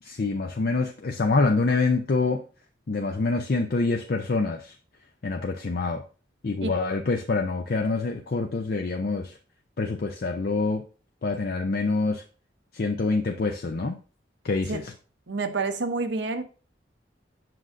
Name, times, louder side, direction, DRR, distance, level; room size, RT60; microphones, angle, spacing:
voice 1, 0.0-2.4 2.9-4.7 5.2-6.0 6.4-9.4 9.8-10.8 11.2-12.2 12.7-14.0 14.4-14.9, left 3 dB, 55° left, 0.5 m, -26 dB
voice 2, 15.3-16.4, right 3 dB, 80° right, 0.8 m, -28 dB
7.7 x 6.1 x 2.5 m
head